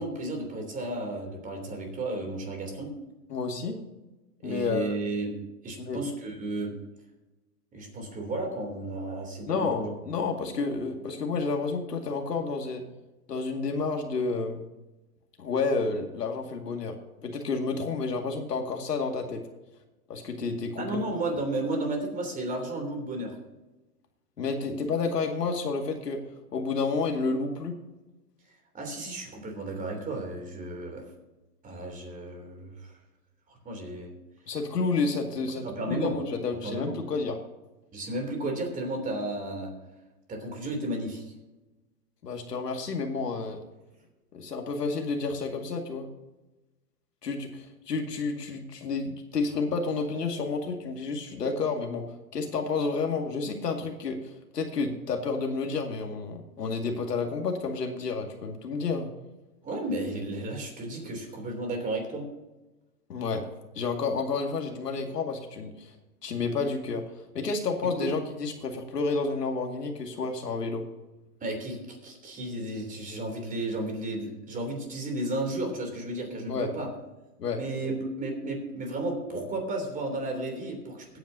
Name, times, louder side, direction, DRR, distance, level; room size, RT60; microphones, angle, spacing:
voice 1, 0.0-2.9 4.4-5.3 5.6-6.7 7.7-9.9 20.8-23.3 28.7-31.0 31.6-32.9 33.6-34.1 35.6-36.1 36.6-36.9 37.9-39.7 40.3-41.2 59.6-62.3 67.9-68.1 71.4-76.9 77.6-81.2, right 2 dB, 15° right, 3 dB, 3.1 m, -33 dB
voice 2, 3.3-3.8 4.4-4.9 5.8-6.0 9.5-12.8 13.3-14.6 15.4-16.9 17.2-19.4 20.1-21.0 24.4-26.2 26.5-27.8 34.5-37.4 42.2-43.6 44.3-46.1 47.2-52.0 52.3-59.1 63.1-63.4 63.8-65.9 66.2-67.0 67.3-70.8 76.5-76.7 77.4-77.6, left 4 dB, 90° left, 3 dB, 2.3 m, -30 dB
22.5 x 9.2 x 2.8 m, 1.1 s
hypercardioid pair, 135°, 47 cm